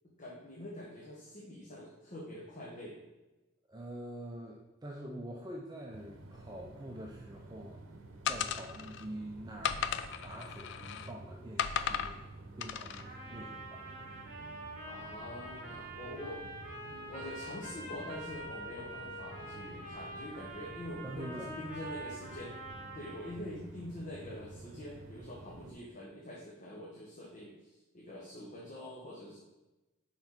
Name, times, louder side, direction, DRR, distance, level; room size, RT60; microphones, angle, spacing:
voice 1, 0.2-3.0 14.9-16.4 16.8-21.3 21.6-22.5 22.9-27.5 27.9-29.4, left 1 dB, 40° left, -4 dB, 1.0 m, -45 dB
voice 2, 3.7-7.8 8.3-12.3 12.6-14.2 16.8-16.9 21.0-21.6, right 1 dB, 20° right, -1 dB, 0.5 m, -46 dB
sound 1, 5.9-25.7, right 2 dB, 85° right, 0.7 m, -51 dB
sound 2, 8.3-9.0 9.6-11.1 11.6-12.1 12.6-13.0, left 8 dB, 65° left, 0.4 m, -35 dB
Trumpet, 13.0-23.4, right 1 dB, 45° right, 1.3 m, -45 dB
5.8 x 4.5 x 4.4 m, 1.1 s
head